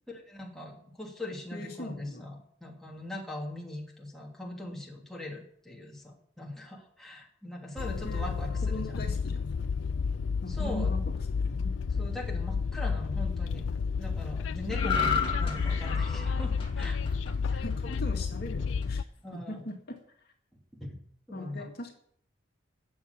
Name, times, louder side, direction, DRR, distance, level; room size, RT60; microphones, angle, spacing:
voice 1, 0.3-8.8 10.5-11.0 12.0-13.6 14.0-17.0 17.5-17.6 19.2-19.6 20.7-20.9 21.3-21.7, left 1 dB, ahead, -3 dB, 3.0 m, -41 dB
voice 2, 1.5-2.2 8.0-8.3 8.6-9.7 10.4-11.0 11.4-11.7 14.8-15.1 17.6-19.0 19.3-20.0 20.2-20.3 21.3-22.0, left 1 dB, 55° left, 2 dB, 2.2 m, -40 dB
Train, 7.8-19.0, left 5 dB, 90° left, 0.4 m, -31 dB
sound 1, 14.7-18.2 18.6-18.8, left 6 dB, 30° left, 2.6 m, -33 dB
18.0 x 7.3 x 7.0 m, 0.64 s
head